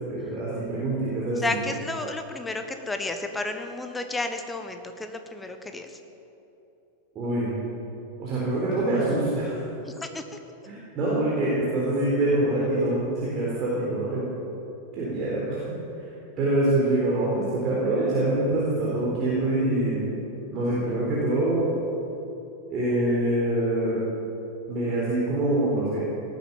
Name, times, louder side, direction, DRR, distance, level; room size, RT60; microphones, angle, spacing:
voice 1, 0.1-1.6 7.2-7.5 8.2-9.6 10.7-14.2 14.9-15.6 16.4-20.0 20.5-21.6 22.7-24.0 24.7-26.0, right 1 dB, 30° right, -7 dB, 4.0 m, -25 dB
voice 2, 1.3-5.9 9.8-10.2, left 2 dB, 10° left, 6 dB, 1.2 m, -32 dB
18.0 x 9.3 x 7.2 m, 2.9 s
figure-of-eight pair, 90°, 0 cm